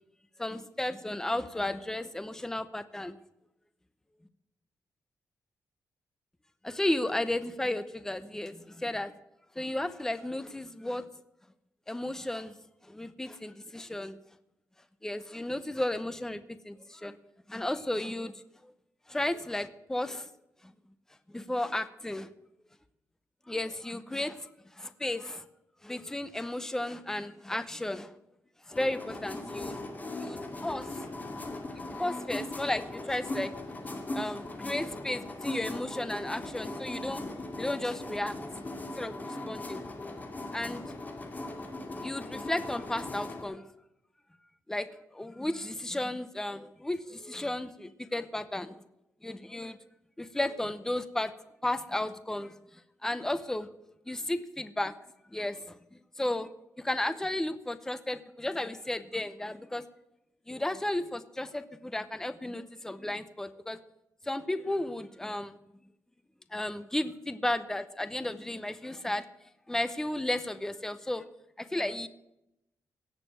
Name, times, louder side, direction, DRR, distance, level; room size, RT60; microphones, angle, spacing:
voice 1, 0.4-3.2 6.6-9.1 9.6-11.1 11.9-12.6 12.8-14.2 15.0-17.2 17.5-18.4 19.1-20.3 20.6-20.7 21.3-22.3 23.5-24.5 24.7-25.4 25.8-28.1 28.7-29.8 30.2-31.0 31.8-33.5 34.1-37.3 37.6-38.4 39.0-39.8 40.5-40.8 42.0-43.7 44.7-48.8 49.2-49.8 50.2-51.3 51.6-53.7 54.1-54.9 55.3-55.8 56.2-56.5 56.8-59.8 60.5-63.8 64.2-65.6 66.5-69.3 69.7-71.2 71.6-72.1, left 1 dB, 10° left, 12 dB, 0.7 m, -34 dB
sound 1, 28.7-43.4, left 2 dB, 25° left, 2.5 m, -39 dB
17.0 x 6.8 x 9.2 m, 0.85 s
wide cardioid pair, 150°, 6 cm